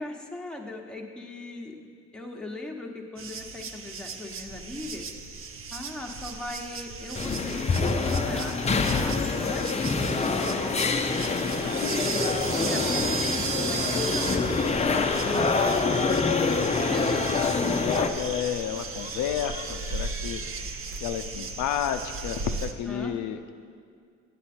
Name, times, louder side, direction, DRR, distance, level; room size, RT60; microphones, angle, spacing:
voice 1, 0.0-1.9 2.1-5.1 5.7-12.3 12.6-17.4 22.9-23.2, left 2 dB, 5° left, 0 dB, 1.1 m, -39 dB
sound 1, 3.2-22.7, right 4 dB, 45° right, 0.7 m, -36 dB
sound 2, 7.1-18.1, left 4 dB, 20° left, 0.5 m, -26 dB
sound 3, 10.8-20.4, right 1 dB, 25° right, 1.3 m, -44 dB
voice 2, 17.1-20.4 21.0-23.5, left 9 dB, 80° left, 8 dB, 0.5 m, -31 dB
9.6 x 8.4 x 4.3 m, 2.1 s
cardioid pair, 90°, 30 cm